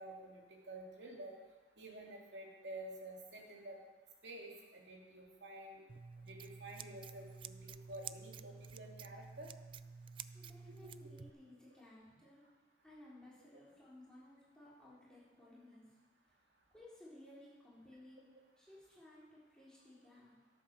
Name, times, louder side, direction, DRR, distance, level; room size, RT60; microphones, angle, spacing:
voice 1, 0.0-1.3 1.8-3.8 4.2-5.8 6.3-9.5 11.0-11.2, right 1 dB, 80° right, -1 dB, 2.5 m, -50 dB
Scissors, 5.9-11.3, right 6 dB, 30° right, 0.3 m, -51 dB
voice 2, 10.3-12.4 12.8-15.9 16.7-18.3 18.6-20.3, left 1 dB, 5° left, -9 dB, 3.9 m, -58 dB
13.5 x 8.2 x 6.3 m, 1.3 s
head